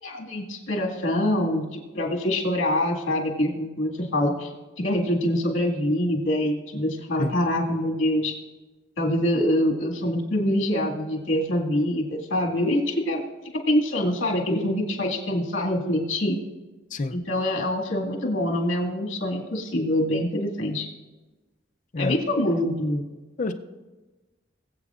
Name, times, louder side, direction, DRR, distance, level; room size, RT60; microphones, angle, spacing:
voice 1, 0.0-4.5 4.8-8.3 9.0-13.2 13.7-16.4 17.1-20.9 22.0-23.1, left 1 dB, 75° left, -1 dB, 2.0 m, -25 dB
voice 2, 7.2-7.4 16.9-17.2 21.9-22.2 23.4-23.5, left 3 dB, 40° left, 8 dB, 0.5 m, -27 dB
21.0 x 8.0 x 2.5 m, 1.2 s
head